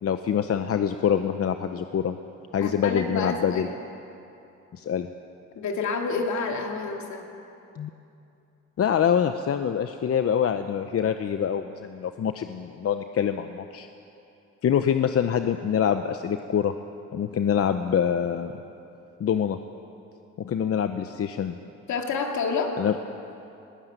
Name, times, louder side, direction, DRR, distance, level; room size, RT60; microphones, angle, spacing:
voice 1, 0.0-2.1 2.5-3.7 4.7-5.1 7.8-7.9 8.8-13.9 14.6-16.7 17.1-18.5 19.2-19.6 20.4-21.6 22.8-22.9, left 8 dB, 50° left, 8 dB, 0.8 m, -25 dB
voice 2, 2.6-3.6 5.6-7.2 21.9-22.8, left 4 dB, 70° left, 3 dB, 2.6 m, -28 dB
20.0 x 15.5 x 9.1 m, 2.7 s
cardioid pair, 90°, 30 cm